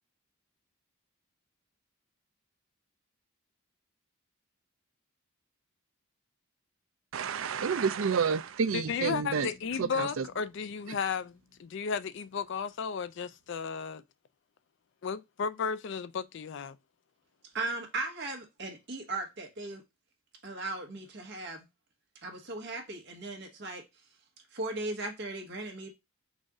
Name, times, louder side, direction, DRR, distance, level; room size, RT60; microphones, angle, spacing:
voice 1, 7.1-9.5 9.8-10.2, right 6 dB, 70° right, 0.4 m, -29 dB
voice 2, 8.7-14.0 15.0-16.8, left 6 dB, 55° left, 0.4 m, -34 dB
Bass guitar, 8.8-12.5, left 3 dB, 5° left, 1.1 m, -58 dB
voice 3, 17.5-19.8 20.4-21.7 22.2-23.8 24.5-25.9, right 2 dB, 50° right, 1.2 m, -37 dB
4.0 x 2.6 x 4.8 m
head